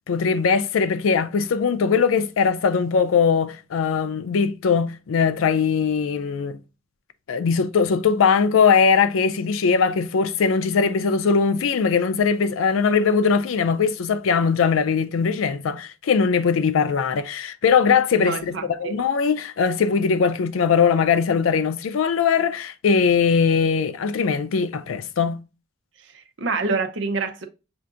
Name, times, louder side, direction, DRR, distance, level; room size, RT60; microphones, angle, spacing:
voice 1, 0.1-6.6 7.3-25.4, left 5 dB, 90° left, 0.4 m, -20 dB
voice 2, 18.1-19.0 26.1-27.4, right 4 dB, 65° right, 0.6 m, -27 dB
6.7 x 2.5 x 2.5 m
head